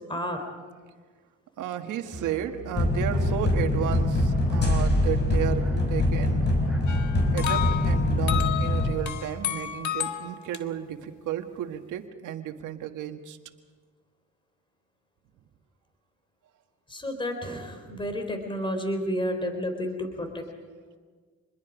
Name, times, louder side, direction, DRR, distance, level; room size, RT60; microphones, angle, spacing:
voice 1, 0.1-0.4 16.9-20.4, equal, 15° left, 5 dB, 3.7 m, -31 dB
voice 2, 1.6-6.5 7.3-13.4 17.9-18.0, right 10 dB, 85° right, 6 dB, 1.7 m, -33 dB
Musical instrument, 2.1-7.8, right 2 dB, 5° right, 4.5 m, -41 dB
sound 1, 2.7-8.9, left 1 dB, 35° left, 5.3 m, -24 dB
sound 2, 6.9-10.6, left 11 dB, 70° left, 1.5 m, -32 dB
27.0 x 21.0 x 5.1 m, 1.5 s
cardioid pair, 90°, 30 cm